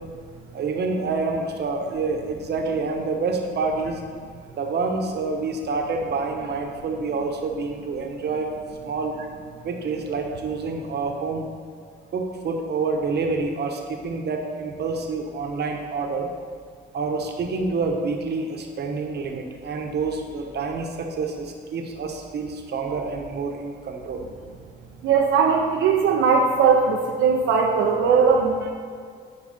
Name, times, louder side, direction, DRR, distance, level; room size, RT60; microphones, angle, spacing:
voice 1, 0.5-4.0 4.6-8.5 8.8-9.2 9.6-11.5 12.1-16.3 16.9-24.3 28.6-28.7, right 4 dB, 55° right, 3 dB, 1.1 m, -27 dB
voice 2, 25.0-28.7, right 5 dB, 85° right, 0 dB, 0.7 m, -19 dB
9.9 x 4.7 x 4.2 m, 2.1 s
cardioid pair, 90°, 20 cm